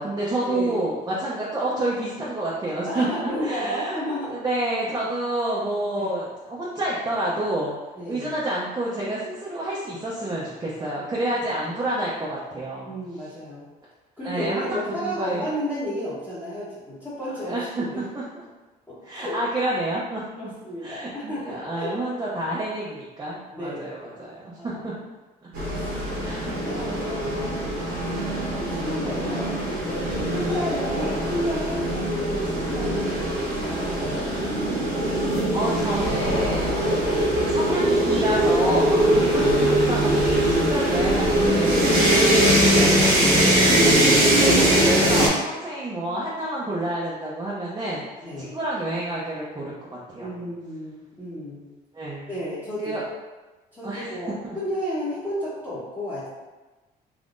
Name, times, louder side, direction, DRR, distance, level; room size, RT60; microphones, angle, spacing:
voice 1, 0.0-7.8 8.1-12.9 14.2-15.4 17.4-18.4 19.0-20.5 20.8-24.9 26.2-26.6 35.5-36.8 37.3-39.2 39.5-43.2 43.8-48.1 48.4-50.3 51.9-52.3 52.8-53.0 53.8-54.1 54.4-54.6, right 1 dB, 25° right, -7 dB, 0.6 m, -29 dB
voice 2, 2.8-4.4 6.0-6.2 8.0-8.4 11.6-11.7 12.8-13.7 14.2-18.0 18.9-19.4 20.4-22.0 23.5-24.0 24.6-24.8 25.7-25.9 26.4-33.3 33.6-34.8 39.2-39.7 43.3-44.4 48.2-48.6 50.2-51.6 52.3-53.1 53.7-56.3, equal, 15° left, -12 dB, 1.0 m, -33 dB
sound 1, 25.5-45.3, right 1 dB, 70° right, 1.1 m, -21 dB
3.6 x 2.7 x 2.5 m, 1.2 s
cardioid pair, 110°, 17 cm